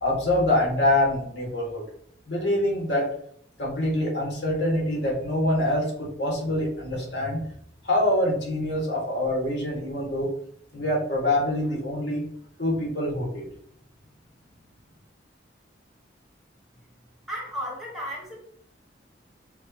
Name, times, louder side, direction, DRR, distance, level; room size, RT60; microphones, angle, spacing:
voice 1, 0.0-1.8 2.2-3.1 3.6-7.4 7.8-10.3 10.7-12.3 12.6-13.5, left 1 dB, 70° left, -2 dB, 1.6 m, -25 dB
voice 2, 17.3-18.4, equal, ahead, -4 dB, 1.2 m, -34 dB
6.2 x 2.5 x 2.8 m, 0.67 s
head